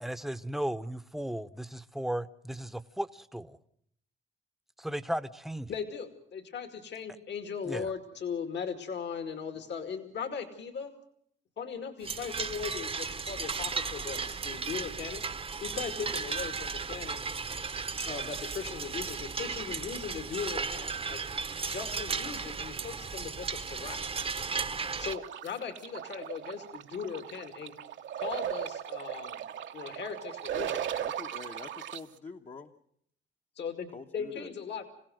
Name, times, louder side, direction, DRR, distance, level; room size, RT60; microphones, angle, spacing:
voice 1, 0.0-3.6 4.8-5.7 7.6-7.9, right 1 dB, ahead, 0.9 m, -35 dB
voice 2, 5.7-10.9 11.6-15.2 15.6-17.2 18.0-21.2 21.7-24.1 25.0-27.7 28.2-31.0 33.6-34.9, left 6 dB, 60° left, 2.3 m, -38 dB
sound 1, 12.0-25.1, right 5 dB, 30° right, 0.9 m, -35 dB
sound 2, 25.1-32.0, right 10 dB, 70° right, 1.1 m, -37 dB
voice 3, 31.0-32.7 33.9-34.5, left 4 dB, 35° left, 1.1 m, -45 dB
26.5 x 16.5 x 7.8 m
cardioid pair, 90°, 20 cm